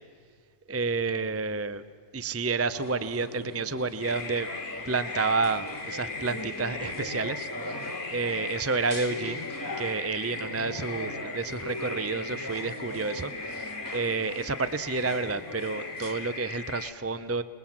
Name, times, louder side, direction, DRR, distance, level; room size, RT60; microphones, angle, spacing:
voice 1, 0.7-1.8 2.1-4.5 4.9-9.5 9.8-17.4, right 4 dB, 20° right, 14 dB, 0.4 m, -30 dB
sound 1, 2.7-16.1, left 1 dB, 15° left, 2.4 m, -40 dB
sound 2, 4.0-16.9, left 4 dB, 45° left, 1.5 m, -39 dB
27.5 x 21.0 x 7.3 m, 2.1 s
omnidirectional pair, 1.3 m